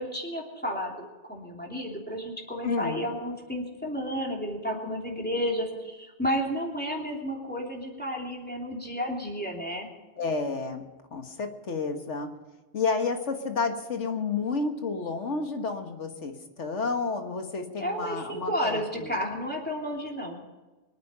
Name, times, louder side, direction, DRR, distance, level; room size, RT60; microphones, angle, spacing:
voice 1, 0.0-9.9 17.8-20.4, equal, 10° left, -1 dB, 3.1 m, -32 dB
voice 2, 2.6-3.1 10.2-12.3 12.7-19.2, left 4 dB, 80° left, 5 dB, 1.9 m, -31 dB
24.0 x 9.4 x 5.6 m, 1.2 s
omnidirectional pair, 1.2 m